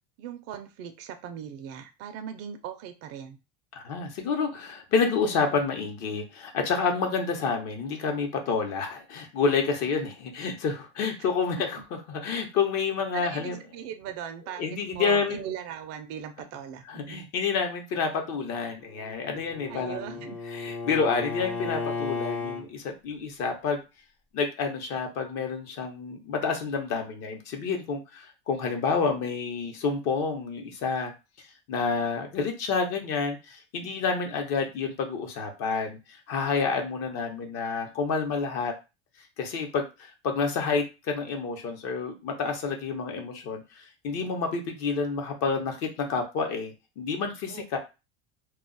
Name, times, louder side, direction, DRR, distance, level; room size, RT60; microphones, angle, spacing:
voice 1, 0.2-3.4 11.2-11.6 13.1-17.2 19.7-20.4 47.5-47.8, right 9 dB, 50° right, 7 dB, 0.5 m, -39 dB
voice 2, 3.8-13.6 14.6-15.4 16.9-23.8 24.3-31.1 31.7-38.7 39.4-47.8, left 5 dB, 60° left, 3 dB, 0.9 m, -29 dB
Bowed string instrument, 18.8-22.6, left 4 dB, 5° left, 0.5 m, -34 dB
2.3 x 2.0 x 3.8 m, 0.28 s
supercardioid pair, 115°, 30 cm